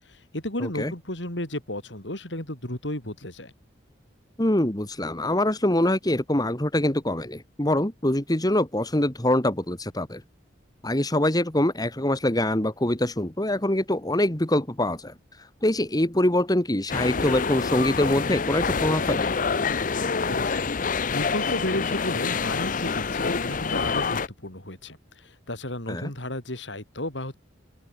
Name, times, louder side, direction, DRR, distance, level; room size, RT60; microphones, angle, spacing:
voice 1, 0.1-3.5 20.3-20.7 21.1-25.0 25.2-27.3, left 1 dB, 75° left, 7.5 m, -33 dB
voice 2, 0.6-0.9 4.4-10.2 10.8-19.3 25.9-26.1, left 1 dB, 20° left, 2.0 m, -24 dB
sound 1, 16.9-24.3, left 5 dB, 45° left, 0.7 m, -26 dB
open air
head